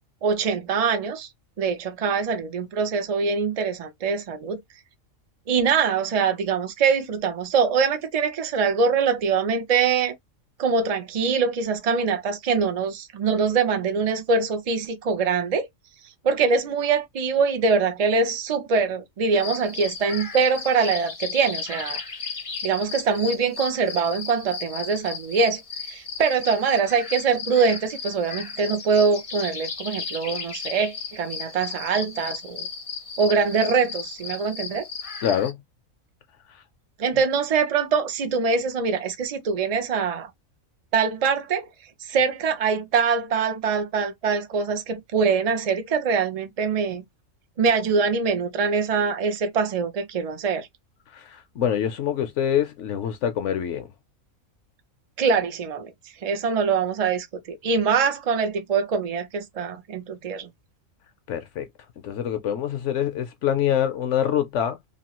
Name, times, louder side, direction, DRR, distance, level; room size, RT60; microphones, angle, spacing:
voice 1, 0.2-1.3 1.6-4.6 5.5-10.1 10.6-15.7 16.2-22.0 22.6-25.6 25.9-32.7 33.2-34.9 37.0-40.3 40.9-41.7 42.1-47.0 47.6-50.7 55.2-55.9 56.2-60.5, right 5 dB, 75° right, 0.3 m, -23 dB
sound 1, 19.3-35.5, left 5 dB, 40° left, 0.5 m, -35 dB
voice 2, 35.2-35.6 51.1-53.9 61.3-61.7 62.0-64.8, left 9 dB, 70° left, 0.8 m, -25 dB
3.0 x 2.3 x 2.9 m
omnidirectional pair, 1.4 m